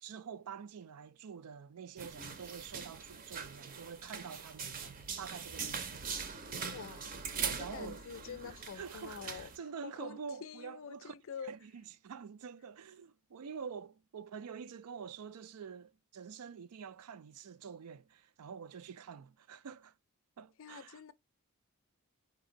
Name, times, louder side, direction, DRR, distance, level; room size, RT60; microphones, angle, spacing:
voice 1, 0.0-6.1 7.4-8.0 8.4-11.1 11.4-19.9 20.4-21.0, right 6 dB, 85° right, 0.4 m, -47 dB
sound 1, 2.0-9.6, right 6 dB, 40° right, 0.6 m, -42 dB
voice 2, 6.6-7.2 7.5-9.5 9.8-11.5 20.6-21.1, left 6 dB, 60° left, 0.4 m, -47 dB
4.1 x 2.5 x 3.8 m
head